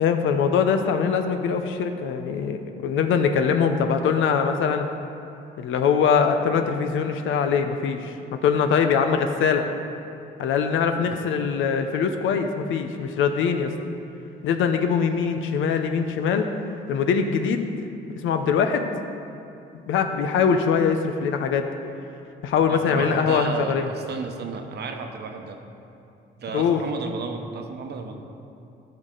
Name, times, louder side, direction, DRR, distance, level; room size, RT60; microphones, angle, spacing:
voice 1, 0.0-4.9 5.6-8.2 8.4-9.7 10.4-13.7 14.4-16.5 16.9-17.7 18.2-18.9 19.9-21.7 22.4-23.9 26.5-26.8, left 6 dB, 80° left, 6 dB, 0.7 m, -22 dB
voice 2, 22.7-25.6 26.4-28.1, right 4 dB, 55° right, 4 dB, 1.0 m, -33 dB
13.0 x 6.6 x 3.9 m, 2.7 s
cardioid pair, 90°, 20 cm